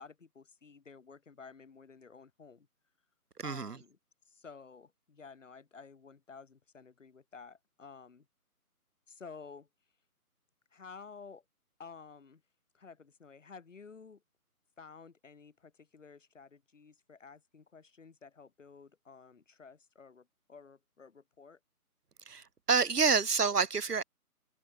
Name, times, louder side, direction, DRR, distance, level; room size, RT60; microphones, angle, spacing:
voice 1, 0.0-2.7 3.4-4.0 4.3-8.3 9.1-9.7 10.7-11.4 11.8-12.4 12.7-14.2 14.8-21.6, left 5 dB, 55° left, 3.4 m, -52 dB
voice 2, 3.4-3.8 22.3-24.0, right 5 dB, 85° right, 1.7 m, -28 dB
open air
hypercardioid pair, 170°, 46 cm